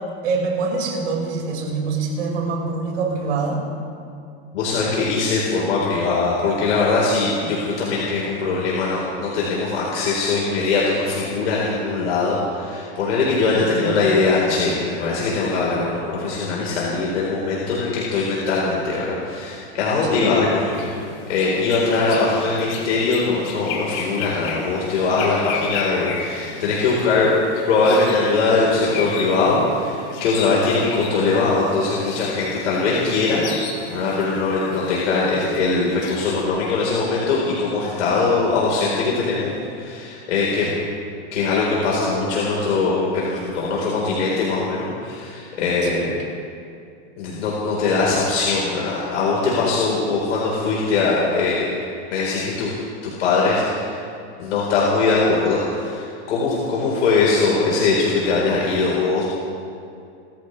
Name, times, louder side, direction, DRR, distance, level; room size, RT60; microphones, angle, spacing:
voice 1, 0.2-3.6 13.6-14.0 20.0-20.2 45.8-46.1, right 4 dB, 80° right, -1 dB, 5.3 m, -25 dB
voice 2, 4.5-20.8 21.3-27.3 27.7-40.7 41.3-46.2 47.2-51.7 52.1-54.0 54.4-59.2, left 3 dB, 75° left, -5 dB, 4.2 m, -21 dB
sound 1, 20.7-36.5, left 5 dB, 45° left, 2.7 m, -34 dB
30.0 x 14.0 x 3.3 m, 2.5 s
supercardioid pair, 160°, 35 cm